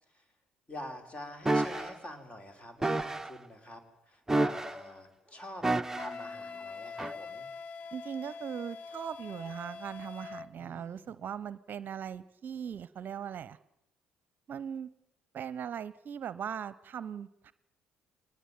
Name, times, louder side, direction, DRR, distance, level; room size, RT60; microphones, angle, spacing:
voice 1, 0.7-5.7 6.0-7.5 10.5-11.1, left 1 dB, 30° left, 6 dB, 5.3 m, -46 dB
sound 1, 1.5-1.9 2.8-3.3 4.3-4.9 5.6-6.2 7.0-7.2, right 2 dB, 10° right, 1.0 m, -29 dB
Wind instrument woodwind instrument, 5.9-10.5, left 5 dB, 50° left, 1.3 m, -44 dB
voice 2, 7.9-13.6 14.5-14.9 15.3-17.5, right 8 dB, 50° right, 17 dB, 0.8 m, -39 dB
23.0 x 19.5 x 9.2 m, 0.85 s
hypercardioid pair, 50°, 4 cm